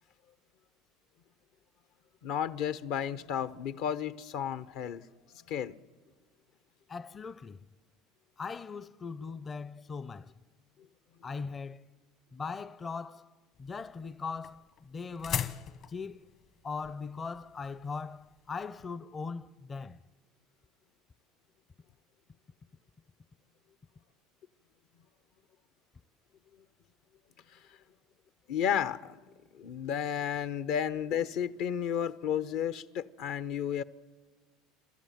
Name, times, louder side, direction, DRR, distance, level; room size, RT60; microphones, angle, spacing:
voice 1, 2.2-5.0 5.5-5.7 28.5-29.2 29.5-33.8, left 9 dB, 65° left, 0.8 m, -32 dB
voice 2, 6.9-7.6 8.4-10.3 11.2-11.9 12.3-13.3 13.6-16.3 16.6-20.0, left 5 dB, 30° left, 0.6 m, -40 dB
sound 1, 13.5-18.8, left 9 dB, 50° left, 1.2 m, -40 dB
29.5 x 13.5 x 9.3 m
hypercardioid pair, 90°, 0 cm